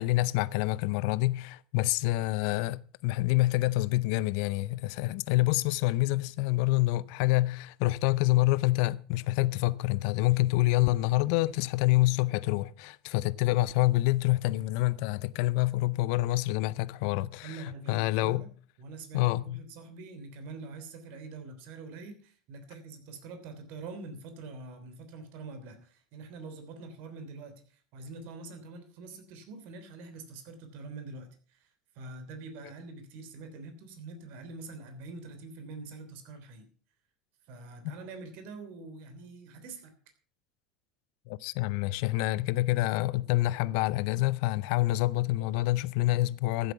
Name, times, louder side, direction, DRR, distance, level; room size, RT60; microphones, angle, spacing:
voice 1, 0.0-18.4 19.1-19.6 41.3-46.7, left 18 dB, 60° left, 0.6 m, -27 dB
voice 2, 17.4-18.5 18.8-31.7 31.9-36.7 37.5-39.9, right 3 dB, 55° right, 3.2 m, -45 dB
14.5 x 8.0 x 5.7 m
hypercardioid pair, 80°, 4 cm